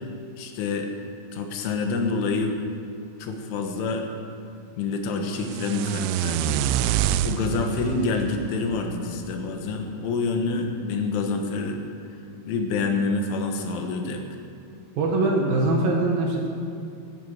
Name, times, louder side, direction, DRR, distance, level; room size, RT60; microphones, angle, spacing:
voice 1, 0.4-0.9 1.3-2.6 3.2-4.1 4.8-11.8 12.5-14.2, left 4 dB, 80° left, 4 dB, 3.8 m, -27 dB
sound 1, 5.4-9.5, right 11 dB, 85° right, 2.8 m, -27 dB
voice 2, 15.0-16.5, right 2 dB, 60° right, -1 dB, 2.7 m, -22 dB
13.0 x 13.0 x 8.0 m, 2.6 s
omnidirectional pair, 5.5 m